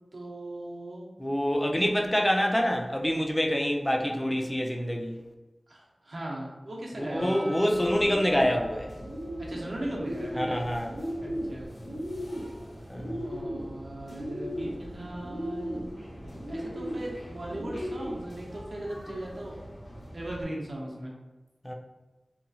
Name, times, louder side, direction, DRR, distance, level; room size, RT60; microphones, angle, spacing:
voice 1, 0.1-1.1 5.7-7.6 9.4-10.6 11.2-11.7 13.2-15.9 16.5-19.6 20.1-21.1, right 1 dB, 65° right, -3 dB, 0.7 m, -38 dB
voice 2, 1.2-5.1 7.0-8.9 10.4-10.9 12.9-13.2 21.6-21.7, equal, 15° left, 1 dB, 0.4 m, -26 dB
Percussion, 7.2-12.1, right 1 dB, 20° right, 0.9 m, -48 dB
Bird, 7.7-20.4, equal, 75° left, 1.0 m, -37 dB
2.9 x 2.6 x 2.3 m, 1.1 s
wide cardioid pair, 60°, 0 cm